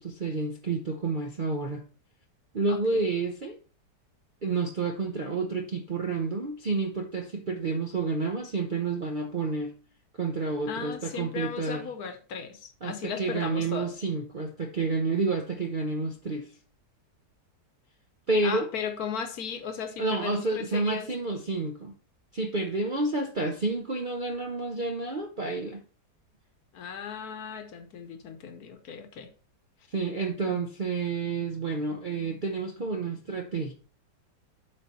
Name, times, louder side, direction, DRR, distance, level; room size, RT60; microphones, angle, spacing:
voice 1, 0.0-1.8 2.5-3.6 4.4-9.8 10.2-11.9 12.8-16.5 18.3-18.7 20.0-21.9 22.3-25.8 29.9-33.7, right 3 dB, 50° right, 0.6 m, -29 dB
voice 2, 2.7-3.1 10.7-13.9 18.4-21.1 26.7-29.3 30.5-30.6, left 7 dB, 65° left, 1.3 m, -36 dB
7.6 x 4.8 x 4.1 m
omnidirectional pair, 1.8 m